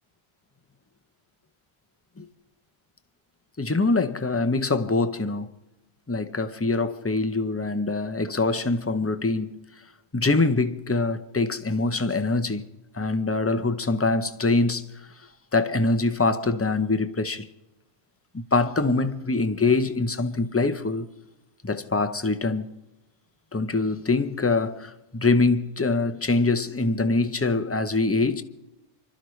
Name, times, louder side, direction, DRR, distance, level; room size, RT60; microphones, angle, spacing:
voice 1, 3.6-5.5 6.1-9.6 10.1-12.6 12.9-14.8 15.5-17.5 18.3-21.1 21.6-22.7 23.5-28.4, left 3 dB, 15° left, 0.6 m, -24 dB
26.0 x 12.5 x 3.2 m
omnidirectional pair, 1.1 m